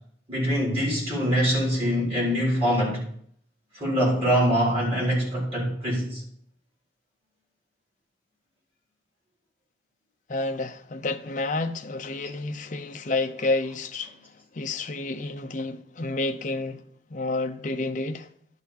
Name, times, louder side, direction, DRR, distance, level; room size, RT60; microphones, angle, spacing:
voice 1, 0.3-3.0 3.7-6.2, equal, 30° right, 3.4 m, -24 dB
voice 2, 10.3-16.8 17.1-18.3, left 2 dB, 40° left, 0.6 m, -30 dB
11.5 x 4.1 x 7.0 m
head